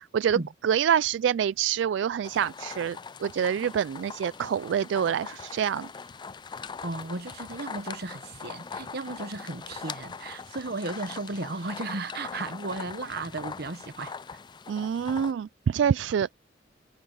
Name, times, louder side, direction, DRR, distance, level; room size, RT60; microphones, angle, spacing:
voice 1, 0.0-0.4 0.6-5.9 14.7-16.3, right 8 dB, 75° right, 0.3 m, -26 dB
sound 1, 2.2-15.3, left 5 dB, 25° left, 0.4 m, -41 dB
sound 2, 3.4-11.8, right 6 dB, 35° right, 5.9 m, -65 dB
voice 2, 6.8-14.2, right 2 dB, 60° right, 1.3 m, -35 dB
head